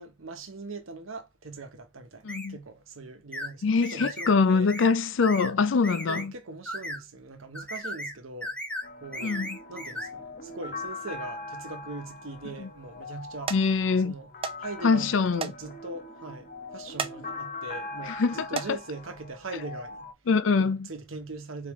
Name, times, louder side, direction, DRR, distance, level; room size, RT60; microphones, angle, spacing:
voice 1, 0.0-4.7 6.1-8.6 9.0-9.4 9.7-13.5 14.0-14.3 14.6-20.1 20.6-21.7, right 3 dB, 90° right, 1.1 m, -41 dB
voice 2, 2.2-2.6 3.6-6.3 9.2-9.6 12.6-12.7 13.5-14.1 14.8-15.5 18.0-18.8 20.3-20.9, left 4 dB, 70° left, 0.5 m, -24 dB
sound 1, 2.3-2.5 3.3-3.5 3.8-4.3 4.7-4.9 5.2-5.5 5.8-6.2 6.6-7.0 7.5-8.1 8.4-8.9 9.1-10.1, left 1 dB, 5° left, 0.8 m, -36 dB
sound 2, 8.8-20.1, left 3 dB, 40° left, 0.8 m, -41 dB
sound 3, 12.0-12.5 13.0-13.2 13.5-13.6 14.4-14.6 14.9-15.0 15.4-15.6 16.0-16.1 16.8-17.2 17.7-17.9 18.4-18.7 19.7-19.8 20.3-20.4, right 5 dB, 25° right, 0.4 m, -34 dB
4.2 x 3.7 x 3.1 m
head